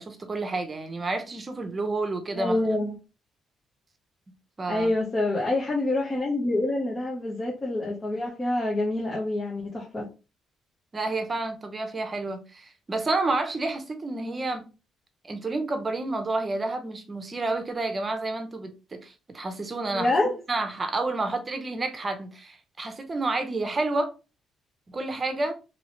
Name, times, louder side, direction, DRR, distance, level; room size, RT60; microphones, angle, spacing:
voice 1, 0.0-2.6 4.6-4.9 10.9-14.7 15.2-20.1 20.5-24.1 24.9-25.5, right 2 dB, 30° right, 0.7 m, -30 dB
voice 2, 2.4-2.9 4.7-10.1 19.9-20.4, left 2 dB, 30° left, 0.9 m, -26 dB
3.0 x 2.8 x 3.0 m
cardioid pair, 90°, 0 cm